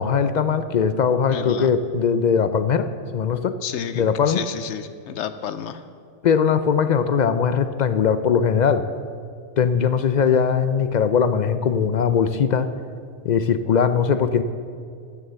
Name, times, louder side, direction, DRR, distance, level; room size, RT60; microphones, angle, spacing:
voice 1, 0.0-2.9 3.1-3.5 3.9-4.4 6.2-8.8 9.6-12.7 13.2-14.4, left 7 dB, 55° left, 11 dB, 0.5 m, -20 dB
voice 2, 1.3-1.7 3.6-5.8, left 9 dB, 75° left, 12 dB, 0.9 m, -31 dB
14.0 x 7.3 x 6.8 m, 2.3 s
omnidirectional pair, 1.2 m